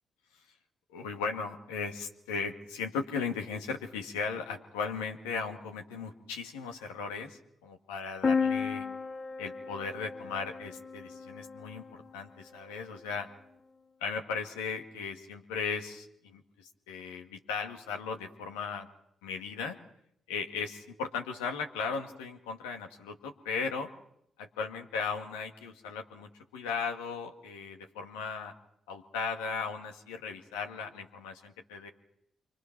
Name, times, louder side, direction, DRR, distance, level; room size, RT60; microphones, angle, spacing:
voice 1, 0.9-8.9 9.4-13.3 14.0-18.9 19.2-19.8 20.3-23.9 24.4-28.5 28.9-31.9, left 5 dB, 85° left, 3 dB, 1.9 m, -37 dB
sound 1, 8.2-12.0, left 5 dB, 40° left, 1.0 m, -33 dB
27.5 x 24.5 x 6.0 m, 0.74 s
hypercardioid pair, 40°, 0 cm